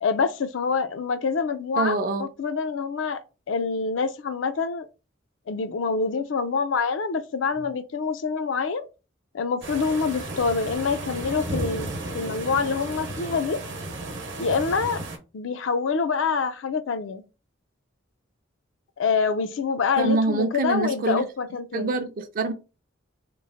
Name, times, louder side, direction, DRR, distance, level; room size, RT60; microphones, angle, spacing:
voice 1, 0.0-3.2 3.5-4.9 5.5-8.9 9.3-13.6 14.4-15.0 15.3-17.2 19.0-21.9, left 5 dB, 70° left, 0.4 m, -26 dB
voice 2, 1.8-2.3 20.0-21.2 21.7-22.5, right 3 dB, 45° right, 0.4 m, -25 dB
sound 1, 9.6-15.2, right 2 dB, 65° right, 0.9 m, -34 dB
3.0 x 2.0 x 3.8 m
head